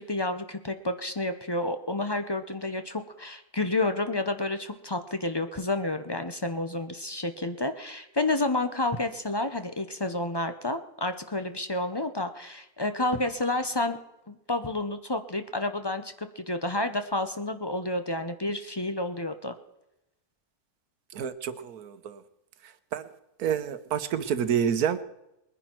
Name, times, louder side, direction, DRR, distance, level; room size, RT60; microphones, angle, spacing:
voice 1, 0.0-14.0 14.3-19.5, left 2 dB, 25° left, 9 dB, 0.5 m, -30 dB
voice 2, 21.1-22.2 22.9-23.1 23.4-25.0, right 8 dB, 80° right, 12 dB, 1.4 m, -28 dB
21.5 x 10.0 x 4.5 m, 0.89 s
omnidirectional pair, 1.6 m